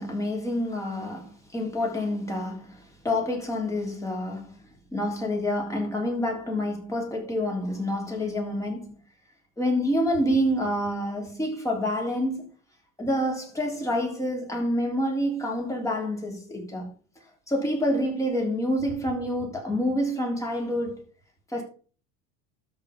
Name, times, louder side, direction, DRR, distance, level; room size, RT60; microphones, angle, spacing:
voice 1, 0.0-4.6 4.9-8.9 9.6-12.5 13.0-16.9 17.5-21.0 21.5-21.6, equal, 5° left, 3.4 m, -27 dB
13.0 x 4.9 x 5.1 m
supercardioid pair, 135°, 41 cm